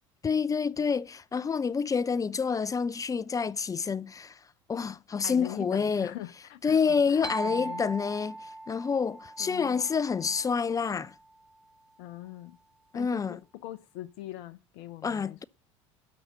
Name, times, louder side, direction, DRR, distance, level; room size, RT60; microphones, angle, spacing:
voice 1, 0.2-4.4 4.7-6.1 6.6-11.2 12.9-13.4 15.0-15.4, left 5 dB, 20° left, 0.5 m, -28 dB
voice 2, 5.2-7.8 9.4-9.8 12.0-12.6 12.9-15.4, left 15 dB, 65° left, 0.8 m, -43 dB
sound 1, 7.2-10.9, right 2 dB, 5° right, 1.4 m, -39 dB
13.0 x 5.7 x 8.6 m
hypercardioid pair, 75°, 16 cm